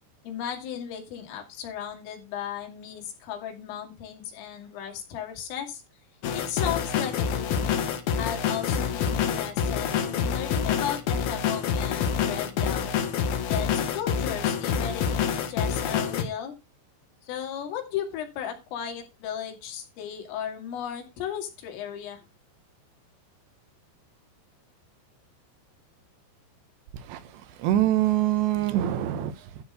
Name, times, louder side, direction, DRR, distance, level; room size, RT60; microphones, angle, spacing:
voice 1, 0.2-5.8 6.3-7.7 8.1-12.9 13.5-15.2 15.5-16.6 17.2-22.2, left 9 dB, 85° left, 4.9 m, -35 dB
sound 1, 6.2-16.2, left 7 dB, 65° left, 2.6 m, -27 dB
voice 2, 26.9-29.6, right 13 dB, 75° right, 2.8 m, -25 dB
12.5 x 4.3 x 6.6 m
omnidirectional pair, 5.7 m